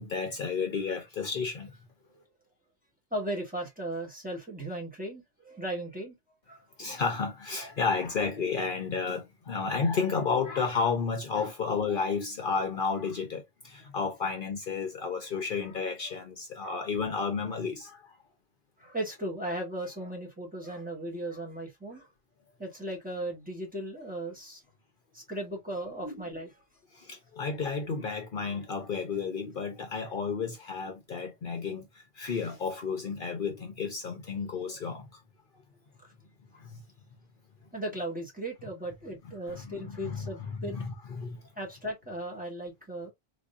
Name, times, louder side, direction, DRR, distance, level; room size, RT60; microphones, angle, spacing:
voice 1, 0.0-1.8 6.8-18.2 26.0-26.2 26.9-35.2 36.5-36.8 39.5-41.4, left 5 dB, 55° left, 0.9 m, -32 dB
voice 2, 3.1-6.1 6.5-6.6 16.6-16.7 18.8-22.1 22.6-24.6 25.1-26.5 36.0-36.1 37.7-40.8 41.6-43.1, right 1 dB, 10° right, 1.5 m, -37 dB
3.5 x 3.1 x 2.5 m
omnidirectional pair, 1.1 m